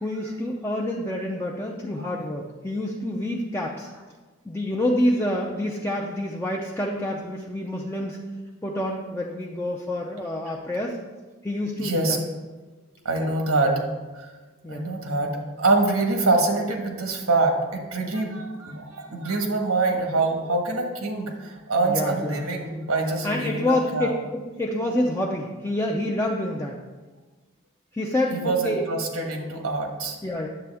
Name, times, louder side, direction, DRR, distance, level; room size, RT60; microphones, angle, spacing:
voice 1, 0.0-3.9 4.5-8.2 8.6-11.0 11.4-12.2 13.2-13.3 14.6-14.9 21.8-22.4 23.2-26.8 27.9-28.8 30.2-30.5, left 1 dB, 10° left, -2 dB, 0.5 m, -27 dB
voice 2, 11.8-12.2 13.0-13.8 14.2-14.3 14.7-24.1 28.3-30.2, right 3 dB, 90° right, 2 dB, 1.4 m, -25 dB
9.7 x 7.7 x 3.5 m, 1.3 s
head